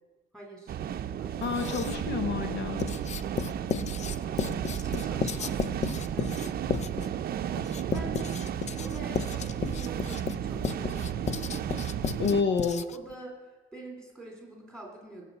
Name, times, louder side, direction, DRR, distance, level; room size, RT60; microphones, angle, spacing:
voice 1, 0.3-0.8 1.2-1.6 4.2-5.7 6.1-6.7 7.9-8.3 8.8-11.8 12.3-12.4 12.9-13.4 13.7-15.3, right 2 dB, 5° left, 0 dB, 3.4 m, -45 dB
sound 1, 0.7-12.4, right 9 dB, 50° right, 0.6 m, -33 dB
voice 2, 1.4-2.9 12.2-12.9, left 5 dB, 60° left, 8 dB, 0.9 m, -28 dB
Writing, 1.4-2.2 2.8-13.1, left 7 dB, 35° left, 0.4 m, -34 dB
18.5 x 6.9 x 8.3 m, 1.2 s
cardioid pair, 160°, 21 cm